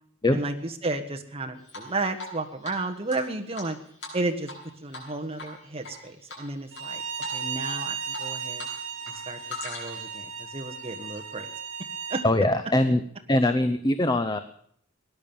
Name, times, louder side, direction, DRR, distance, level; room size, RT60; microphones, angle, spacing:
voice 1, 0.3-3.8 4.1-4.5 4.8-7.0 7.3-8.7 9.1-11.5 12.1-12.2, right 2 dB, 30° right, 4 dB, 1.4 m, -33 dB
Drip, 1.7-2.4 2.6-2.7 3.1-4.6 4.9-5.1 5.4-5.9 6.3-6.8 7.2-7.4 7.7-8.7 9.0-10.1, left 3 dB, 65° left, 7.0 m, -40 dB
Bowed string instrument, 6.7-12.3, right 6 dB, 65° right, 2.2 m, -35 dB
voice 2, 12.2-13.0 13.3-14.4, left 1 dB, 20° left, 10 dB, 0.6 m, -22 dB
18.0 x 11.0 x 7.1 m, 0.66 s
head